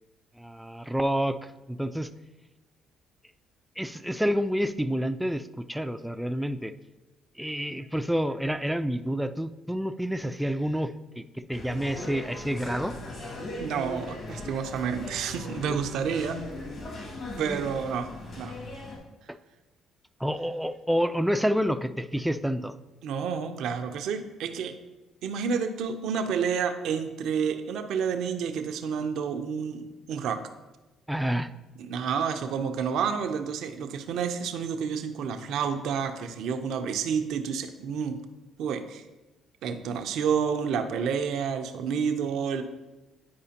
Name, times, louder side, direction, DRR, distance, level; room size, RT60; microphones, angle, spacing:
voice 1, 0.4-1.4 1.7-2.1 3.8-6.7 7.4-11.2 11.5-12.9 20.2-22.7 31.1-31.5, equal, 5° right, 10 dB, 0.4 m, -28 dB
sound 1, 11.5-19.0, left 1 dB, 50° left, 2.2 m, -38 dB
voice 2, 13.6-16.5 17.4-18.1 18.4-18.6 23.0-24.8 25.2-30.4 31.8-38.2 38.6-39.0 39.6-42.6, right 6 dB, 70° right, 7 dB, 0.6 m, -29 dB
9.4 x 4.8 x 2.9 m, 1.1 s
supercardioid pair, 65°, 0 cm